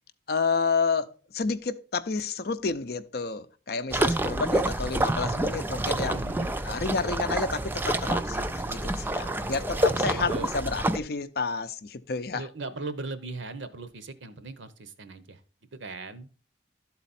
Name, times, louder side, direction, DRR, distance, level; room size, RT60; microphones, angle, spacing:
voice 1, 0.3-6.2 6.6-12.4, left 4 dB, 55° left, 0.5 m, -30 dB
sound 1, 3.9-11.0, right 1 dB, 10° right, 0.3 m, -28 dB
voice 2, 6.0-6.6 9.2-9.4 9.7-10.5 12.3-15.4 15.7-16.3, right 3 dB, 80° right, 0.9 m, -39 dB
12.0 x 4.1 x 4.1 m
head